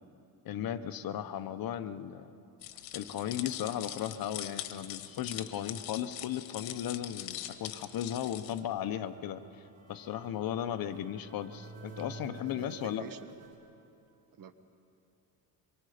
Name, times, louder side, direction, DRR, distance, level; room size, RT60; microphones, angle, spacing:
voice 1, 0.4-2.3 2.9-13.1, left 10 dB, 50° left, 11 dB, 0.9 m, -36 dB
sound 1, 2.6-8.6, left 13 dB, 85° left, 1.2 m, -42 dB
sound 2, 7.1-13.5, right 3 dB, 80° right, 6.5 m, -52 dB
voice 2, 11.8-13.3 14.4-14.5, right 7 dB, 45° right, 9 dB, 1.3 m, -49 dB
24.5 x 23.0 x 5.1 m, 2.6 s
cardioid pair, 130°, 45 cm